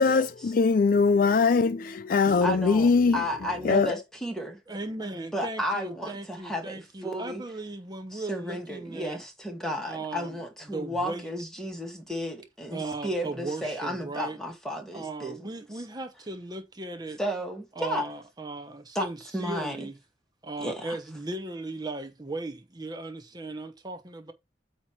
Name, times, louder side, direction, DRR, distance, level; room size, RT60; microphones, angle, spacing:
voice 1, 0.0-3.2 3.6-3.9, left 4 dB, 45° left, 0.4 m, -22 dB
voice 2, 2.4-4.6 5.1-7.4 8.1-15.5 17.2-18.0 19.0-19.1 19.3-19.9 20.6-21.0, equal, 5° left, 2.0 m, -33 dB
voice 3, 4.7-9.2 9.8-10.4 10.7-11.3 12.7-14.4 14.9-17.2 17.8-20.0 20.4-24.3, right 2 dB, 20° right, 0.8 m, -37 dB
8.7 x 3.0 x 5.9 m
head